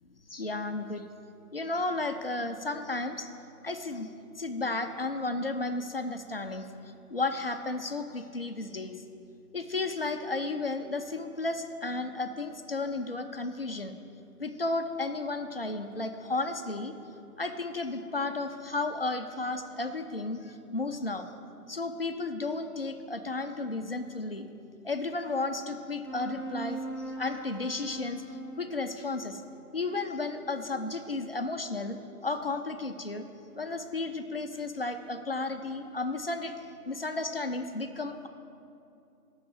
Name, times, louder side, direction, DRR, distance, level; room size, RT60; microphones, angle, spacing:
voice 1, 0.3-1.1 1.5-3.3 3.6-4.1 4.4-6.7 7.1-8.9 9.5-14.0 14.4-16.9 17.4-21.3 21.7-24.5 24.8-26.8 27.2-28.2 28.6-29.4 29.7-33.3 33.5-36.5 36.9-38.3, left 3 dB, 40° left, 7 dB, 0.4 m, -33 dB
sound 1, 26.1-30.9, right 2 dB, 10° right, 1.3 m, -41 dB
7.6 x 6.4 x 7.4 m, 2.6 s
figure-of-eight pair, 145°, 46 cm